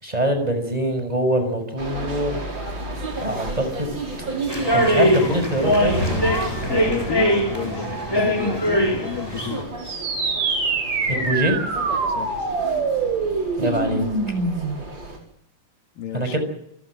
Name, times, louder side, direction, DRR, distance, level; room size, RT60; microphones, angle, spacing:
voice 1, 0.0-2.4 3.2-3.9 4.7-6.0 11.1-11.6 13.6-14.1 16.1-16.4, right 1 dB, 10° right, 7 dB, 5.8 m, -23 dB
sound 1, 1.8-15.2, right 2 dB, 30° right, 5.5 m, -32 dB
sound 2, 4.5-9.6, equal, 5° left, 3.7 m, -22 dB
voice 2, 6.0-9.6 12.2-12.5 16.0-16.4, left 8 dB, 70° left, 7 dB, 3.5 m, -32 dB
sound 3, 9.8-14.8, right 4 dB, 60° right, 5.6 m, -24 dB
28.0 x 16.5 x 7.7 m, 0.74 s
omnidirectional pair, 4.1 m